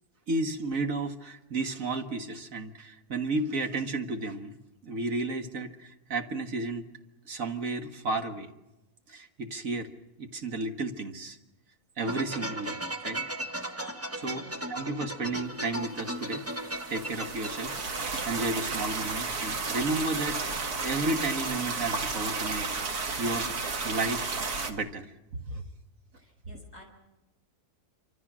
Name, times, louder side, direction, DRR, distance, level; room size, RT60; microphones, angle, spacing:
voice 1, 0.3-4.6 4.8-6.9 7.3-8.5 9.1-9.9 10.2-11.4 12.0-12.8 13.0-13.2 13.6-13.7 14.1-16.4 16.9-23.5 23.8-24.4 24.7-25.0 25.4-25.6, right 2 dB, 60° right, 6 dB, 2.0 m, -33 dB
sound 1, 12.0-18.5, right 1 dB, 10° right, 0.9 m, -37 dB
sound 2, 16.3-24.7, right 4 dB, 80° right, 2.2 m, -33 dB
voice 2, 26.2-26.8, right 1 dB, 25° right, 1 dB, 6.0 m, -51 dB
27.0 x 25.5 x 6.2 m, 0.96 s
omnidirectional pair, 1.6 m